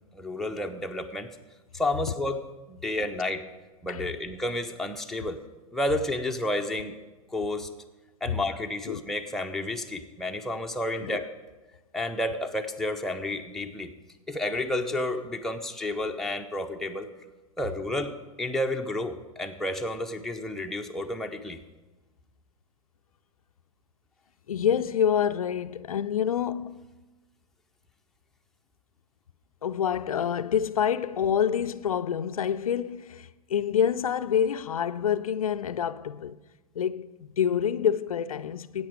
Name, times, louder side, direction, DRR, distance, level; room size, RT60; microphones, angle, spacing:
voice 1, 0.1-1.3 1.7-3.5 3.8-5.4 5.7-6.9 7.3-7.7 8.2-11.3 11.9-13.9 14.3-17.1 17.6-21.6, left 1 dB, ahead, 0.8 m, -31 dB
voice 2, 24.5-26.9 29.6-36.4 36.8-38.9, left 8 dB, 75° left, 0.4 m, -27 dB
13.5 x 8.8 x 4.8 m
figure-of-eight pair, 100°, 18 cm